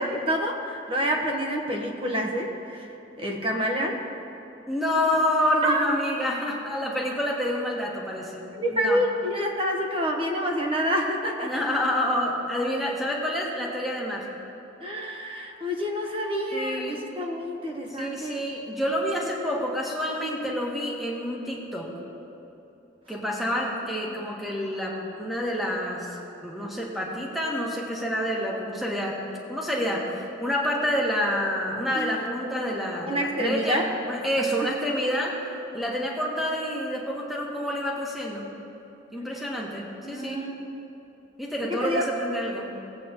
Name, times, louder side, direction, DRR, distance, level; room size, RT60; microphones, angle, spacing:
voice 1, 0.0-4.0 5.6-5.9 8.5-11.6 14.8-18.4 23.7-23.8 31.9-32.2 33.1-33.9 34.6-34.7 39.2-39.4 40.0-40.7 41.6-42.0, equal, 30° right, 1 dB, 1.1 m, -28 dB
voice 2, 4.7-8.4 8.7-9.0 11.4-14.3 16.5-17.0 18.0-21.9 23.1-29.2 29.5-30.0 30.4-35.3 35.7-38.5 39.1-40.4 41.4-42.7, equal, ahead, -3 dB, 1.3 m, -28 dB
17.5 x 8.3 x 3.0 m, 3.0 s
head